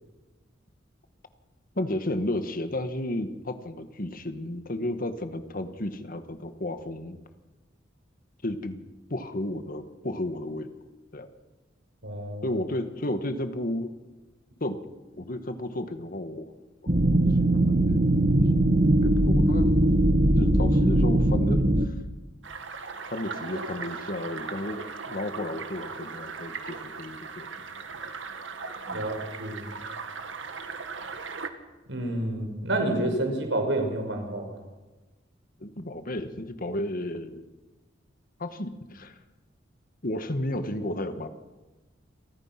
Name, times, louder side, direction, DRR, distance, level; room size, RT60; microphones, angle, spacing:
voice 1, 1.8-7.2 8.4-8.8 9.1-10.7 11.1-11.3 12.4-13.9 14.6-14.8 15.2-16.5 17.5-18.2 19.0-19.7 20.4-21.9 23.1-27.5 27.8-27.9 28.9-29.2 35.6-37.4 38.4-39.2 40.0-41.3, left 1 dB, 50° left, 8 dB, 1.8 m, -33 dB
voice 2, 12.0-12.6 28.9-29.7 31.9-34.5, right 1 dB, 75° right, 4 dB, 5.7 m, -29 dB
sound 1, 16.9-21.9, right 1 dB, 40° right, 1.6 m, -21 dB
sound 2, 22.4-31.5, right 4 dB, 90° right, 2.0 m, -38 dB
29.5 x 24.0 x 6.0 m, 1.2 s
head